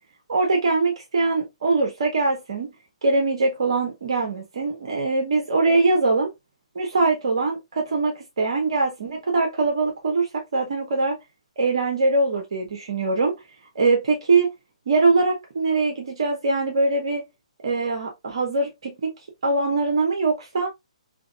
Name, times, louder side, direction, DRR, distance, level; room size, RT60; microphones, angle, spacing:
voice 1, 0.3-2.7 3.0-6.3 6.7-11.2 11.6-13.3 13.7-14.5 14.9-17.2 17.6-19.1 19.4-20.7, right 3 dB, 50° right, 0.8 m, -22 dB
4.9 x 2.9 x 2.4 m
figure-of-eight pair, 130°, 4 cm